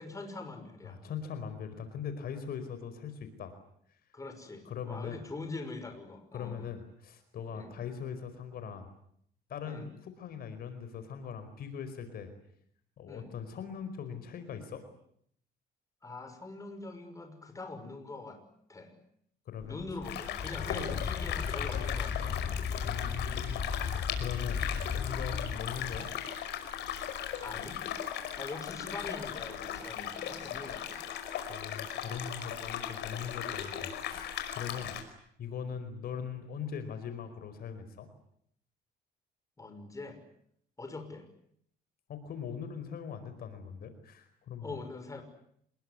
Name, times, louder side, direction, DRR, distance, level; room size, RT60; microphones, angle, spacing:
voice 1, 0.0-1.0 4.1-6.7 7.5-7.7 9.7-9.9 13.1-13.3 16.0-18.4 18.7-18.9 19.6-22.6 27.4-27.8 28.4-31.1 39.6-40.2 40.8-41.3 44.6-45.2, left 3 dB, 20° left, 6 dB, 6.0 m, -43 dB
voice 2, 0.8-3.5 4.6-5.2 6.3-8.9 9.5-12.3 13.0-14.8 19.5-19.8 20.5-21.1 22.8-24.6 25.0-26.1 31.5-34.9 35.4-38.1 42.1-44.8, left 7 dB, 55° left, 9 dB, 4.8 m, -41 dB
Wind, 19.6-26.0, left 6 dB, 40° left, 3.0 m, -36 dB
sound 1, 20.0-35.0, left 10 dB, 70° left, 5.4 m, -38 dB
28.0 x 21.5 x 9.8 m, 0.69 s
cardioid pair, 115°, 18 cm